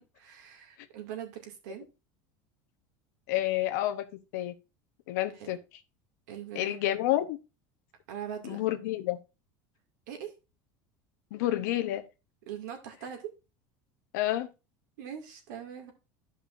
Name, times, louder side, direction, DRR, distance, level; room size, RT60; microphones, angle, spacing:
voice 1, 0.2-1.9 5.4-5.5 6.3-7.0 8.1-8.6 10.1-10.3 12.5-13.3 15.0-15.9, right 9 dB, 85° right, 2.2 m, -41 dB
voice 2, 3.3-4.1 4.3-4.5 5.1-5.6 6.5-7.4 8.4-9.2 11.3-12.0 14.1-14.5, left 14 dB, 80° left, 0.8 m, -29 dB
13.0 x 5.4 x 2.5 m
cardioid pair, 160°, 9 cm